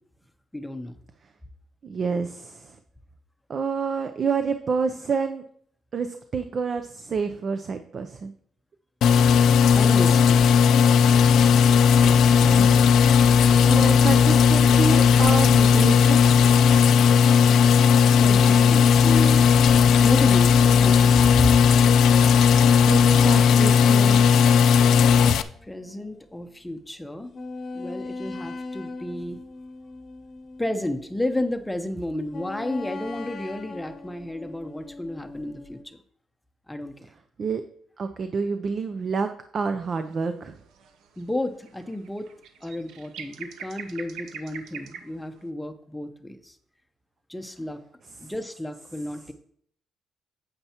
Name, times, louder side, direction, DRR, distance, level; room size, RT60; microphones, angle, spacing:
voice 1, 0.5-1.0 9.7-10.6 18.2-19.5 20.0-21.5 25.7-27.3 27.7-29.4 30.6-36.0 36.7-37.1 41.2-42.3 42.6-46.6 47.3-47.8 48.2-49.3, left 1 dB, 10° left, 8 dB, 0.7 m, -32 dB
voice 2, 1.8-2.8 3.5-5.4 5.9-8.3 12.0-12.8 13.6-16.2 22.9-24.3 37.4-37.6 38.0-40.5 48.2-48.3, right 5 dB, 50° right, 8 dB, 0.5 m, -28 dB
sound 1, 9.0-25.4, left 6 dB, 75° left, 0.4 m, -16 dB
sound 2, 22.2-26.2 26.6-26.7 27.3-31.7 32.3-35.8, left 3 dB, 45° left, 0.8 m, -41 dB
sound 3, 39.9-40.2 40.6-45.4, right 7 dB, 85° right, 0.7 m, -43 dB
8.8 x 8.1 x 2.9 m, 0.63 s
cardioid pair, 90°, 0 cm